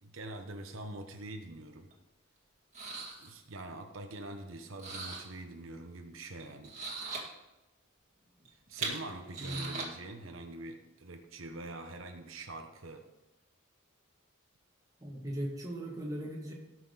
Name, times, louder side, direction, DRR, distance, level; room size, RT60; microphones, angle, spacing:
voice 1, 0.0-1.9 3.2-6.8 8.5-13.0, right 2 dB, 70° right, 5 dB, 1.0 m, -44 dB
sound 1, 1.9-2.0 2.7-3.3 4.8-5.2 6.4-7.3 8.4-9.8, right 4 dB, 35° right, 2.1 m, -39 dB
voice 2, 9.4-9.7 15.0-16.5, right 1 dB, 15° right, -2 dB, 1.9 m, -38 dB
17.5 x 6.3 x 4.0 m, 1.0 s
head